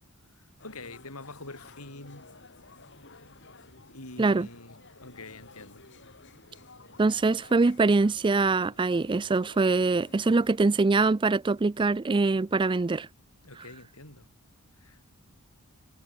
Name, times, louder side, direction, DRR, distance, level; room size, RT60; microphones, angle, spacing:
voice 1, 0.3-2.3 3.9-5.9 13.4-14.3 14.8-15.0, left 2 dB, 80° left, 5.8 m, -45 dB
sound 1, 0.6-10.6, left 3 dB, 55° left, 7.0 m, -53 dB
voice 2, 7.0-13.1, right 3 dB, 20° right, 0.4 m, -23 dB
head